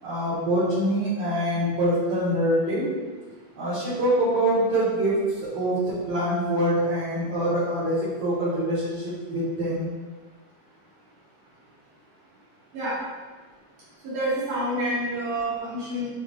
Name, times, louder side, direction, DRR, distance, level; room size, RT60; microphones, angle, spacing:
voice 1, 0.0-2.9 3.6-9.9, right 1 dB, 60° right, -11 dB, 2.6 m, -25 dB
voice 2, 14.1-16.1, right 1 dB, 85° right, -9 dB, 1.4 m, -28 dB
10.5 x 4.8 x 2.4 m, 1.4 s
omnidirectional pair, 5.7 m